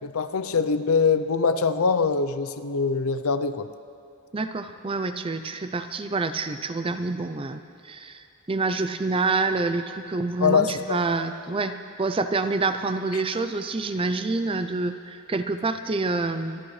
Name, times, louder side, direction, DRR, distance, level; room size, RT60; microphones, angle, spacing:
voice 1, 0.0-3.7 10.4-11.0, left 5 dB, 75° left, 11 dB, 0.6 m, -23 dB
voice 2, 4.3-16.6, right 3 dB, 25° right, 9 dB, 0.5 m, -27 dB
26.0 x 11.5 x 3.2 m, 2.5 s
head